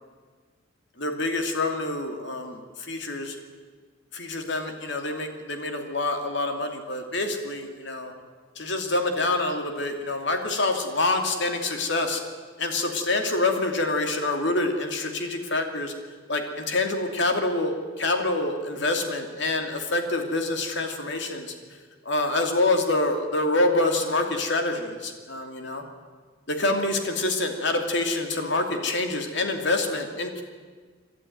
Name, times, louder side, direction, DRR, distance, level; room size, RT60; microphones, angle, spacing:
voice 1, 1.0-3.4 4.1-8.1 8.6-12.2 12.6-15.9 16.3-21.5 22.0-25.8 26.5-30.4, left 2 dB, 60° left, 4 dB, 2.6 m, -26 dB
27.0 x 12.0 x 9.4 m, 1.5 s
head